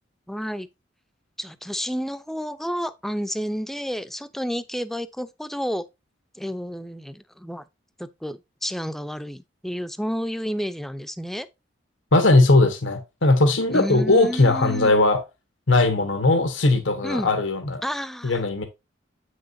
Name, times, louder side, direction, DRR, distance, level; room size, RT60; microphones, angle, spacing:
voice 1, 0.3-0.7 1.4-5.8 6.3-7.6 8.0-11.5 13.7-14.9 17.0-17.3 17.8-18.4, equal, ahead, 0.5 m, -30 dB
voice 2, 12.1-15.2 15.7-17.8 18.2-18.6, left 2 dB, 80° left, 1.2 m, -19 dB
8.6 x 6.3 x 2.6 m
head